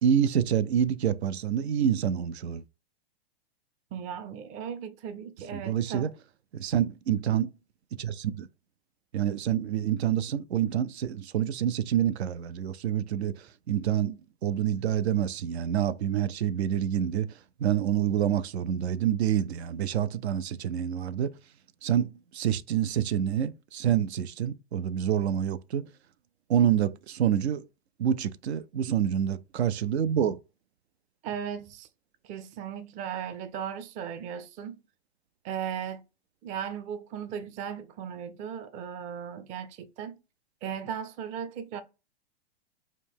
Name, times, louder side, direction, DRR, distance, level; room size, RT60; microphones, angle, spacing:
voice 1, 0.0-2.6 5.5-6.1 6.5-7.5 8.0-8.5 9.1-17.3 17.6-21.3 21.8-25.8 26.5-27.6 28.0-30.4, right 9 dB, 80° right, 0.5 m, -27 dB
voice 2, 3.9-6.1 31.2-31.9 32.2-34.8 35.4-36.1 36.4-40.2 40.6-41.8, right 8 dB, 25° right, 0.4 m, -37 dB
5.0 x 2.2 x 3.5 m
hypercardioid pair, 120°, 32 cm